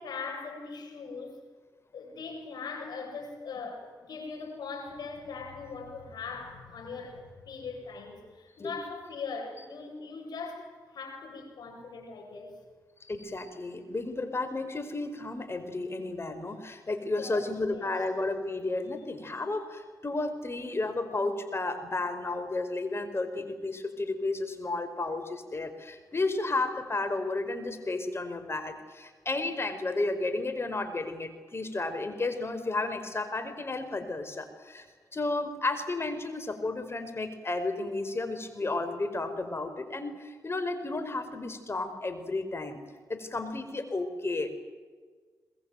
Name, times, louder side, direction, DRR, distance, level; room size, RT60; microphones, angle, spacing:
voice 1, 0.0-1.4 1.9-12.6 17.2-18.0, left 4 dB, 75° left, 3 dB, 7.7 m, -40 dB
voice 2, 13.1-34.8 35.1-42.8 43.1-44.5, left 2 dB, 35° left, 9 dB, 4.9 m, -32 dB
23.0 x 21.0 x 9.3 m, 1.5 s
cardioid pair, 55°, 7 cm